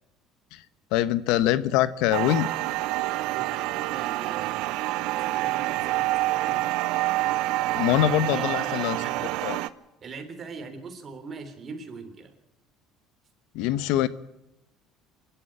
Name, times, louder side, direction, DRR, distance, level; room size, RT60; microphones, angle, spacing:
voice 1, 0.9-2.5 7.7-9.0 9.4-9.6 13.5-14.1, left 13 dB, 75° left, 16 dB, 0.9 m, -23 dB
sound 1, 2.1-9.7, right 17 dB, 70° right, 0.8 m, -27 dB
voice 2, 2.9-6.6 8.3-9.4 10.0-12.3, right 4 dB, 30° right, 7 dB, 3.4 m, -42 dB
25.5 x 12.0 x 8.8 m, 0.91 s
cardioid pair, 135°, 0 cm